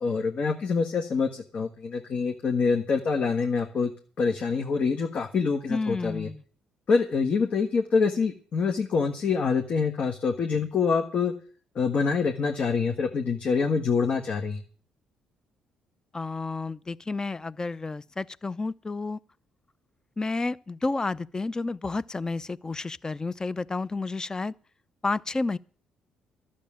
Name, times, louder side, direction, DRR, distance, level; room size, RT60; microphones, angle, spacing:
voice 1, 0.0-3.9 4.2-6.3 6.9-11.3 11.7-14.6, left 5 dB, 55° left, 1.5 m, -26 dB
voice 2, 5.7-6.4 16.1-19.2 20.2-24.5 25.0-25.6, left 3 dB, 25° left, 0.7 m, -31 dB
12.5 x 7.4 x 8.8 m
hypercardioid pair, 55°, 3 cm